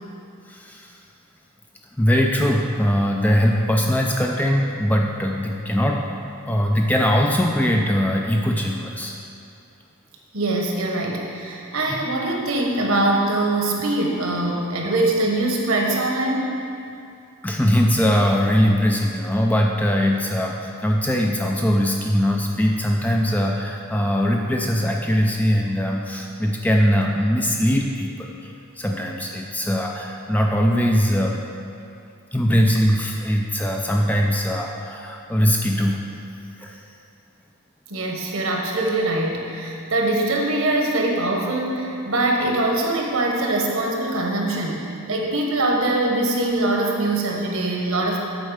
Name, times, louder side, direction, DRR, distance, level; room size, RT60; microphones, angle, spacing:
voice 1, 0.5-1.0 2.0-6.2 6.5-9.1 11.9-12.0 17.4-28.3 28.8-31.4 32.3-36.0 36.6-36.8, equal, 5° left, 0 dB, 0.4 m, -21 dB
voice 2, 10.3-16.5 37.9-48.2, right 2 dB, 70° right, 0 dB, 1.2 m, -23 dB
8.1 x 4.3 x 6.4 m, 2.5 s
head